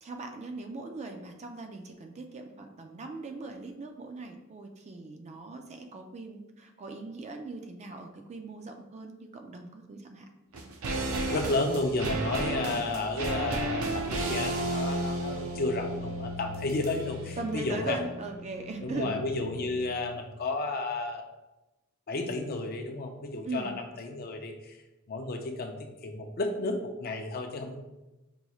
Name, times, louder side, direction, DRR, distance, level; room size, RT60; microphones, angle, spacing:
voice 1, 0.0-10.3 17.4-19.2 23.5-23.7, right 3 dB, 35° right, 5 dB, 0.3 m, -39 dB
sound 1, 10.5-19.9 20.2-20.3, right 2 dB, 85° right, 0.5 m, -34 dB
voice 2, 11.3-18.0 18.8-21.2 22.1-23.7 24.0-24.8 25.1-27.8, left 2 dB, 45° left, 4 dB, 0.5 m, -32 dB
5.3 x 2.9 x 2.3 m, 1.0 s
head